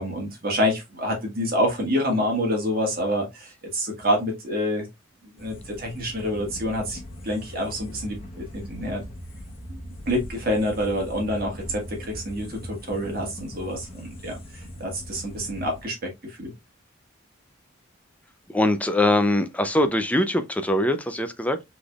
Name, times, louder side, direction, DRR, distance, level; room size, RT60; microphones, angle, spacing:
voice 1, 0.0-4.9 5.2-7.0 7.2-9.0 9.7-16.5, equal, 45° right, 1.7 m, -27 dB
sound 1, 5.4-15.8, equal, 30° left, 1.1 m, -40 dB
voice 2, 18.5-21.6, left 1 dB, 5° left, 0.5 m, -22 dB
6.0 x 3.4 x 2.3 m
head